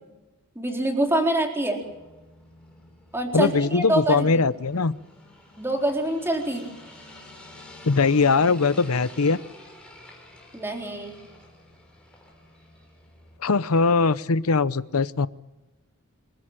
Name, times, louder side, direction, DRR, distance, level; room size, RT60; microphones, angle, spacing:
voice 1, 0.6-1.8 3.1-4.4 5.6-6.6 10.5-11.2, right 1 dB, 10° right, 1 dB, 4.1 m, -25 dB
sound 1, 1.8-13.4, left 1 dB, 5° left, 5.8 m, -48 dB
voice 2, 3.3-4.9 7.8-9.4 13.4-15.3, left 4 dB, 80° left, 16 dB, 0.8 m, -21 dB
27.5 x 13.5 x 9.1 m, 1.1 s
head